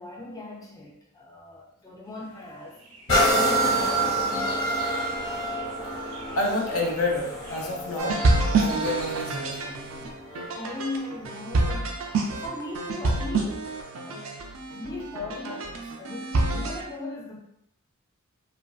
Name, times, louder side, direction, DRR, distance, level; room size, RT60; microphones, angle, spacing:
voice 1, 0.0-2.8 3.3-4.8 10.5-14.4 14.7-17.4, left 2 dB, 15° left, -2 dB, 0.4 m, -38 dB
Chirp tweet, 2.1-9.3, right 2 dB, 85° right, 0.8 m, -45 dB
sound 1, 3.1-10.7 11.3-11.4, right 1 dB, 65° left, 1.0 m, -27 dB
voice 2, 6.4-8.2 8.6-9.9, left 2 dB, 80° left, -1 dB, 0.7 m, -29 dB
sound 2, 8.0-16.8, right 3 dB, 70° right, 0.4 m, -27 dB
3.0 x 2.5 x 2.3 m, 0.76 s
head